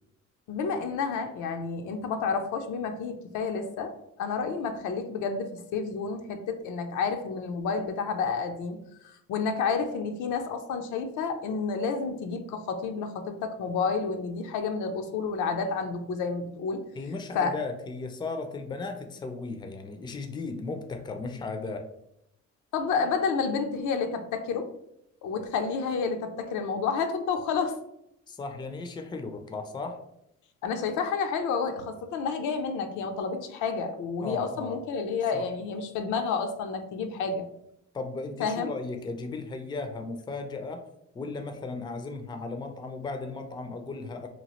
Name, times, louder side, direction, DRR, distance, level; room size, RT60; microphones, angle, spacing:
voice 1, 0.5-3.9 4.2-8.8 9.0-16.8 17.3-17.5 22.7-24.7 25.2-27.8 30.6-37.4 38.4-38.7, left 5 dB, 80° left, 6 dB, 0.5 m, -30 dB
voice 2, 17.0-21.9 28.3-30.0 34.2-34.8 35.3-35.5 37.9-40.8 41.1-44.3, left 3 dB, 15° left, 6 dB, 0.4 m, -36 dB
2.9 x 2.4 x 2.9 m, 0.80 s
cardioid pair, 90°, 30 cm